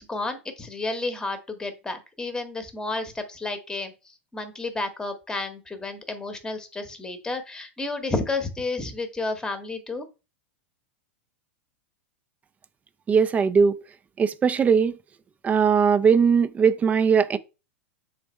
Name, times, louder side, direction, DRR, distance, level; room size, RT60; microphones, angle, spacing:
voice 1, 0.0-3.9 4.3-10.1, left 3 dB, 10° left, 0.9 m, -31 dB
voice 2, 13.1-13.8 14.2-15.0 15.4-17.4, right 6 dB, 20° right, 0.4 m, -19 dB
3.5 x 3.3 x 4.2 m
hypercardioid pair, 105°, 7 cm